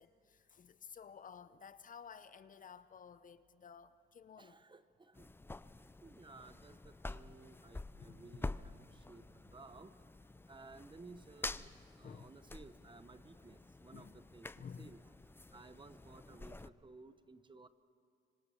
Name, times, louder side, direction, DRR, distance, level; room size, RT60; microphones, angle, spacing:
voice 1, 0.0-4.6 8.1-8.5 12.0-12.3 13.9-14.2 14.6-14.9, left 6 dB, 40° left, 0.8 m, -54 dB
voice 2, 4.4-5.3 6.0-9.9 10.5-11.7 12.0-15.0 15.5-17.7, right 3 dB, 25° right, 1.0 m, -57 dB
sound 1, 5.1-16.7, left 2 dB, 10° left, 0.5 m, -48 dB
26.0 x 25.0 x 5.7 m
cardioid pair, 90°, 20 cm